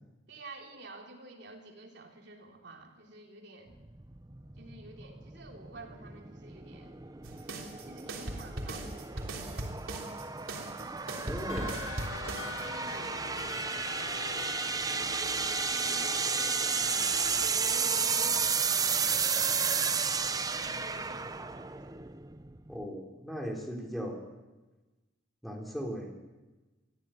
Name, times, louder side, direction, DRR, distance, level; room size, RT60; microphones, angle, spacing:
voice 1, 0.3-3.8 4.6-7.0 7.8-9.9 10.5-11.0 12.6-13.2 15.8-17.0 17.4-22.0, right 2 dB, 55° right, 2 dB, 3.4 m, -50 dB
sound 1, 3.7-22.8, right 5 dB, 20° right, 0.7 m, -32 dB
sound 2, 7.2-12.6, right 1 dB, 80° right, 3.4 m, -39 dB
voice 2, 11.3-11.8 22.7-24.2 25.4-26.1, equal, ahead, 0 dB, 3.8 m, -37 dB
sound 3, 11.5-17.5, left 6 dB, 85° left, 1.1 m, -43 dB
23.5 x 15.0 x 9.2 m, 1.2 s
head